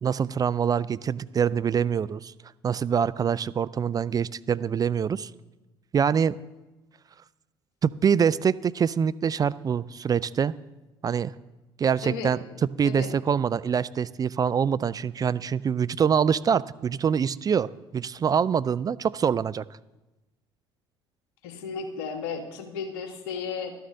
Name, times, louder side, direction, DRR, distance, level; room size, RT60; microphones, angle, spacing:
voice 1, 0.0-2.3 2.6-5.3 5.9-6.3 7.8-10.5 11.0-11.3 11.8-12.4 12.8-19.6, right 7 dB, 30° right, 17 dB, 0.4 m, -25 dB
voice 2, 12.0-12.4 12.8-13.1 21.4-23.7, left 5 dB, 70° left, 6 dB, 1.4 m, -34 dB
12.5 x 6.9 x 6.4 m, 1.1 s
hypercardioid pair, 60°, 13 cm